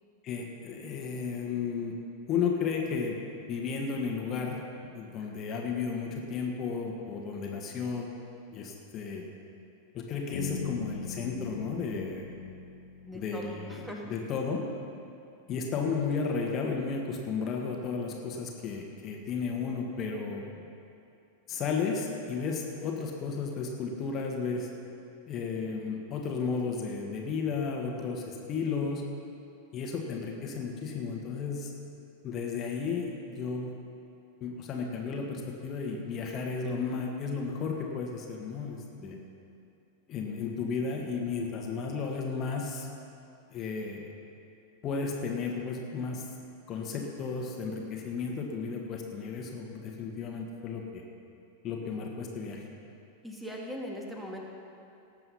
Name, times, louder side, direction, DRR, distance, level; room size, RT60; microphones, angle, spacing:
voice 1, 0.2-2.0 2.3-3.2 3.5-4.6 4.9-8.1 8.5-9.2 9.9-12.3 13.1-13.7 14.1-14.6 15.5-20.6 21.5-24.7 25.3-29.1 29.7-31.7 32.2-33.7 34.4-39.2 40.1-42.9 43.5-44.1 44.8-46.3 46.7-51.0 51.6-52.7, left 5 dB, 30° left, 1 dB, 1.7 m, -33 dB
Bass guitar, 10.3-14.3, left 4 dB, 60° left, 1.1 m, -41 dB
voice 2, 13.0-14.1 39.0-39.1 53.2-54.4, equal, 5° right, -1 dB, 1.8 m, -41 dB
18.5 x 7.8 x 5.7 m, 2.6 s
figure-of-eight pair, 90°, 0 cm